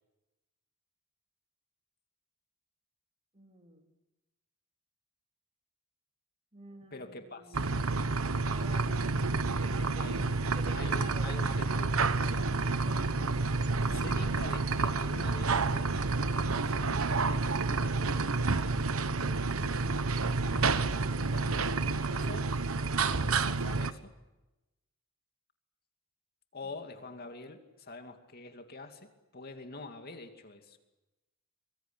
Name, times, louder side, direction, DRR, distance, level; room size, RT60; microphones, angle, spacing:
voice 1, 3.3-3.8 6.5-7.8 8.5-9.0 9.6-10.3 10.5-11.5 12.6-13.1, right 2 dB, 30° right, 3 dB, 3.5 m, -50 dB
voice 2, 6.9-7.6 10.0-10.4 10.7-12.6 13.9-19.9 20.5-22.5 23.0-24.1 26.5-30.8, left 2 dB, 50° left, 6 dB, 2.5 m, -47 dB
sound 1, 7.5-23.9, right 3 dB, 85° right, 1.2 m, -29 dB
24.0 x 23.5 x 8.4 m, 1.0 s
head